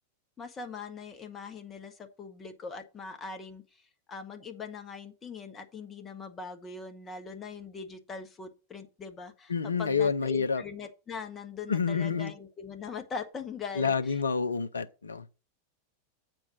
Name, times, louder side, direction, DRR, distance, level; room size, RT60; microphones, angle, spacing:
voice 1, 0.4-3.6 4.1-14.2, left 5 dB, 20° left, 1.3 m, -41 dB
voice 2, 9.5-10.6 11.7-12.3 13.7-15.3, left 5 dB, 75° left, 0.6 m, -28 dB
8.4 x 4.5 x 6.3 m
figure-of-eight pair, 90°, 0 cm